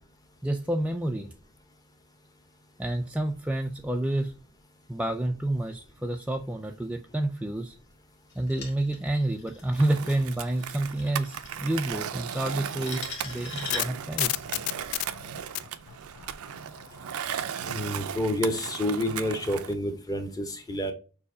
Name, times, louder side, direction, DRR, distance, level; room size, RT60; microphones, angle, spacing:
voice 1, 0.4-1.3 2.8-4.3 4.9-7.8 8.4-14.5, right 1 dB, 5° right, 0.3 m, -29 dB
sound 1, 8.3-14.1, left 4 dB, 60° left, 1.7 m, -42 dB
Skateboard, 9.8-19.7, right 8 dB, 75° right, 0.5 m, -36 dB
sound 2, 13.3-17.5, left 16 dB, 90° left, 0.3 m, -33 dB
voice 2, 17.6-20.9, left 1 dB, 15° left, 0.8 m, -29 dB
6.4 x 2.7 x 2.6 m
head